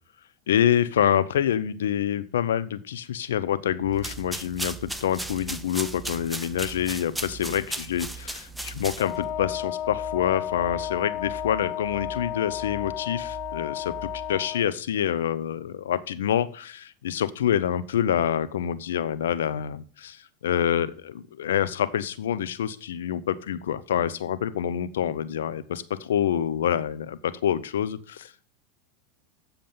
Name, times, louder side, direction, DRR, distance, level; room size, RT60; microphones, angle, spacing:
voice 1, 0.5-28.5, left 10 dB, 85° left, 15 dB, 0.6 m, -27 dB
sound 1, 3.8-14.4, right 8 dB, 40° right, 0.7 m, -45 dB
sound 2, 3.9-9.3, right 1 dB, ahead, 0.8 m, -36 dB
Wind instrument woodwind instrument, 9.0-14.7, left 11 dB, 55° left, 0.7 m, -33 dB
8.0 x 6.8 x 5.2 m, 0.43 s
hypercardioid pair, 100°, 0 cm